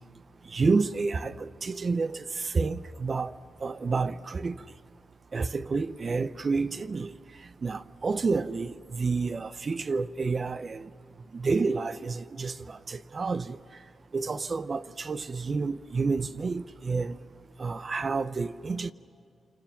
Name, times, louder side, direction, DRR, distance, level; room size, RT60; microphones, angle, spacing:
voice 1, 0.5-4.6 5.3-7.1 7.6-10.9 11.3-13.6 14.1-17.2 17.6-18.9, right 4 dB, 45° right, 0.7 m, -29 dB
29.5 x 26.0 x 5.8 m
cardioid pair, 90°, 0 cm